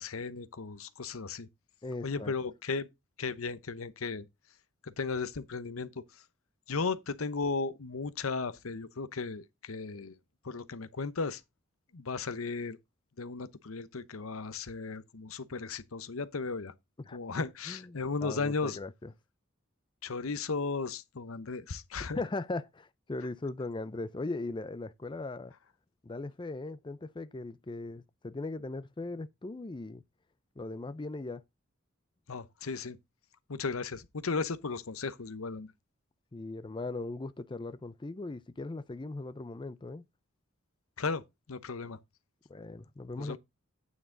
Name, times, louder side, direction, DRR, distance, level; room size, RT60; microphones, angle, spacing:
voice 1, 0.0-1.5 2.0-2.9 3.2-4.3 4.8-6.2 6.7-10.2 10.4-11.4 11.9-12.8 13.2-16.7 17.1-18.8 20.0-22.2 32.3-33.0 33.5-35.7 41.0-41.2 41.5-42.0 43.2-43.4, left 4 dB, 85° left, 0.9 m, -35 dB
voice 2, 1.8-2.3 17.1-17.2 17.7-19.1 22.1-25.5 26.0-30.0 30.6-31.4 36.3-40.0 42.5-43.4, left 2 dB, 25° left, 0.5 m, -39 dB
9.4 x 6.1 x 3.9 m
head